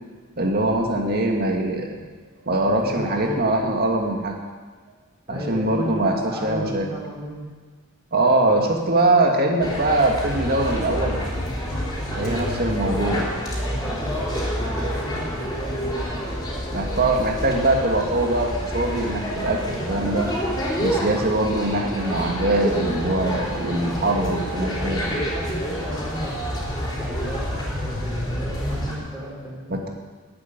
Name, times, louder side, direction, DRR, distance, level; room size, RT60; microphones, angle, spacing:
voice 1, 0.4-2.0 2.4-4.4 5.3-6.9 8.1-11.2 12.2-13.2 16.7-20.3 20.8-25.0 29.7-29.9, right 2 dB, 45° right, 1 dB, 2.1 m, -22 dB
voice 2, 2.6-3.4 5.3-7.5 8.4-9.0 12.0-13.0 13.7-16.4 24.8-29.8, equal, 10° right, -5 dB, 4.1 m, -34 dB
sound 1, 9.6-29.0, equal, 20° left, 4.0 m, -28 dB
12.0 x 9.2 x 9.4 m, 1.4 s
head